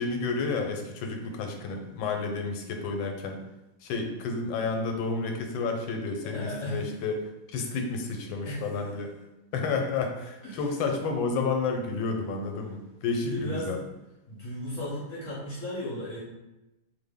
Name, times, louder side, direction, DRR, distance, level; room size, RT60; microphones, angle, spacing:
voice 1, 0.0-3.4 3.8-7.2 7.5-9.1 9.5-13.8, left 4 dB, 85° left, 4 dB, 1.3 m, -30 dB
voice 2, 6.2-6.8 7.6-7.7 8.3-8.6 10.4-10.6 13.2-13.8 14.3-16.2, left 1 dB, 65° left, -5 dB, 0.7 m, -35 dB
3.4 x 2.1 x 3.4 m, 0.97 s
omnidirectional pair, 2.1 m